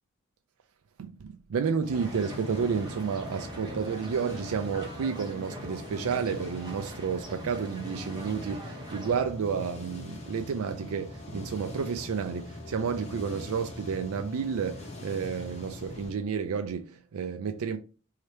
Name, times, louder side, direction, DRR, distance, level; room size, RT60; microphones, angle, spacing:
voice 1, 1.0-17.8, right 6 dB, 75° right, 0.4 m, -31 dB
sound 1, 1.8-16.1, left 2 dB, 30° left, 1.0 m, -42 dB
sound 2, 1.9-9.2, equal, 20° right, 0.8 m, -43 dB
3.3 x 2.8 x 4.2 m
head